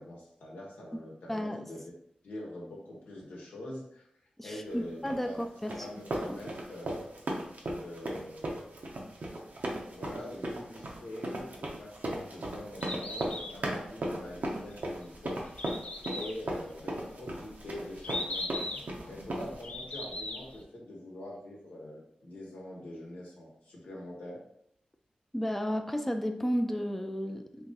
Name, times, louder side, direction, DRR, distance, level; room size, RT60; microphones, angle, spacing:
voice 1, 0.0-1.9 2.2-4.0 4.4-5.4 5.7-7.1 7.6-8.7 9.9-15.7 16.0-18.6 19.1-24.4, left 1 dB, 85° left, -3 dB, 0.9 m, -44 dB
voice 2, 1.3-1.6 4.4-5.7 6.1-6.4 25.3-27.7, equal, 5° left, 5 dB, 0.4 m, -33 dB
sound 1, 5.1-19.6, right 1 dB, 70° right, 0.7 m, -37 dB
Bird, 12.6-20.6, left 2 dB, 60° left, 0.6 m, -40 dB
2.9 x 2.6 x 3.7 m, 0.72 s
cardioid pair, 40°, 3 cm